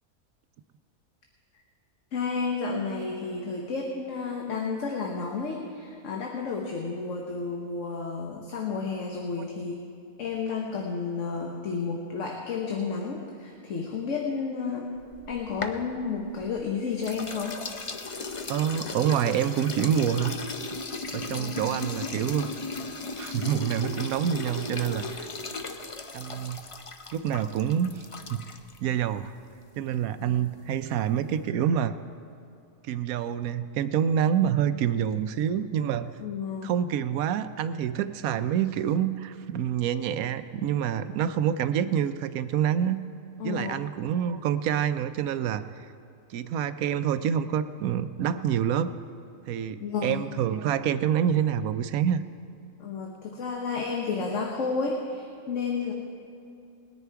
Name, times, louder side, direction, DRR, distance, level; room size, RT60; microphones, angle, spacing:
voice 1, 2.1-9.8 10.2-14.9 15.3-17.6 21.4-21.6 30.2-30.4 36.2-36.7 43.4-43.8 49.8-50.3 52.8-55.9, left 4 dB, 65° left, 1 dB, 1.4 m, -31 dB
sound 1, 15.0-16.6 17.0-28.8, left 3 dB, 40° left, 0.5 m, -36 dB
voice 2, 18.5-20.4 21.1-22.5 23.2-25.3 26.1-26.6 27.1-28.0 28.3-28.4 28.8-29.3 29.8-31.9 32.9-36.1 36.6-43.0 43.4-45.6 46.3-48.9 49.5-52.2, right 9 dB, 85° right, 12 dB, 1.1 m, -27 dB
20.0 x 10.0 x 4.6 m, 2.6 s
omnidirectional pair, 1.5 m